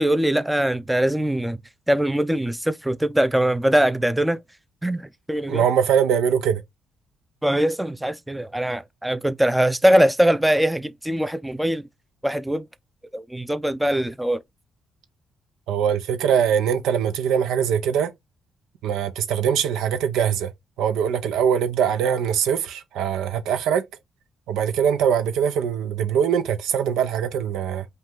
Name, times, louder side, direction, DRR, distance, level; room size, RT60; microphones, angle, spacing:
voice 1, 0.0-1.6 1.9-4.4 4.8-5.6 7.4-11.9 12.2-12.7 13.1-14.4, right 1 dB, 5° right, 0.4 m, -22 dB
voice 2, 5.5-6.6 15.7-18.1 18.8-20.5 20.8-23.9 24.5-27.9, right 8 dB, 85° right, 0.6 m, -22 dB
5.3 x 2.3 x 3.7 m
cardioid pair, 90°, 0 cm